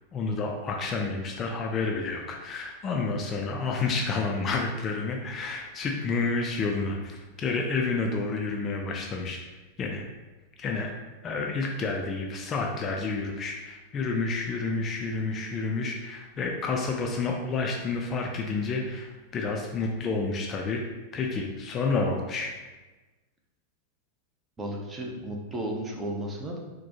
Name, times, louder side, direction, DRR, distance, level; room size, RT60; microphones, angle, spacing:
voice 1, 0.1-9.4 9.8-10.0 10.6-11.0 11.2-20.8 21.1-22.5, left 3 dB, 25° left, 1 dB, 0.4 m, -29 dB
voice 2, 24.6-26.6, right 1 dB, 20° right, 0 dB, 0.6 m, -34 dB
4.1 x 2.2 x 2.8 m, 1.2 s
figure-of-eight pair, 90°, 0 cm